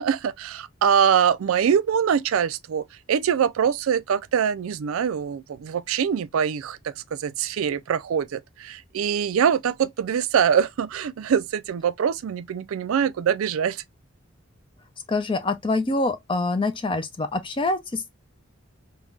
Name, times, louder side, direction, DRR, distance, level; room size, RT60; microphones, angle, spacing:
voice 1, 0.0-13.8, right 8 dB, 80° right, 0.4 m, -23 dB
voice 2, 15.1-18.1, left 2 dB, 25° left, 0.4 m, -25 dB
3.6 x 2.2 x 2.3 m
head